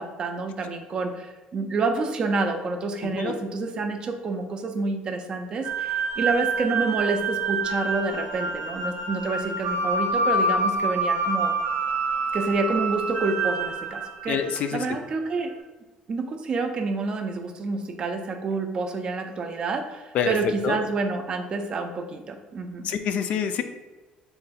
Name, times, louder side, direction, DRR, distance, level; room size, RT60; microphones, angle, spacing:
voice 1, 0.0-11.5 12.3-14.4 14.7-15.5 16.1-22.9, right 3 dB, 35° right, 5 dB, 0.4 m, -28 dB
voice 2, 3.0-3.3 14.3-14.9 20.1-20.8 22.8-23.6, left 8 dB, 55° left, 8 dB, 0.3 m, -27 dB
sound 1, 5.6-14.8, right 3 dB, 85° right, 0.7 m, -27 dB
3.8 x 2.2 x 4.1 m, 1.2 s
cardioid pair, 160°, 3 cm